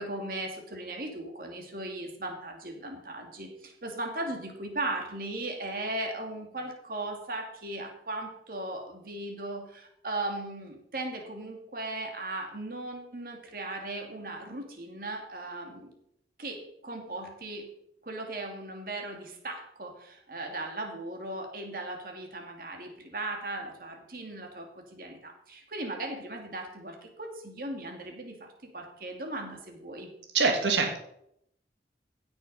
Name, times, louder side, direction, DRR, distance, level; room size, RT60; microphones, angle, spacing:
voice 1, 0.0-15.9 16.4-17.7 18.0-30.1, right 2 dB, 55° right, 2 dB, 2.3 m, -37 dB
voice 2, 30.3-31.0, right 4 dB, 90° right, 3 dB, 1.6 m, -24 dB
16.5 x 6.3 x 5.4 m, 0.74 s
head